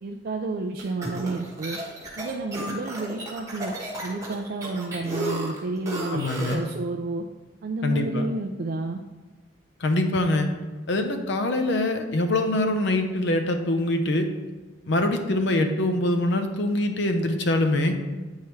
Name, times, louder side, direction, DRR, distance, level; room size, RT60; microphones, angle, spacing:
voice 1, 0.0-1.8 2.2-3.7 4.0-7.2 7.6-9.0, right 3 dB, 50° right, 4 dB, 0.4 m, -31 dB
sound 1, 0.8-6.7, right 1 dB, 15° right, 1.3 m, -33 dB
voice 2, 6.1-6.6 7.8-8.3 9.8-10.5 10.9-14.3 14.9-18.0, left 1 dB, 65° left, 6 dB, 0.7 m, -24 dB
8.4 x 4.6 x 3.1 m, 1.3 s
head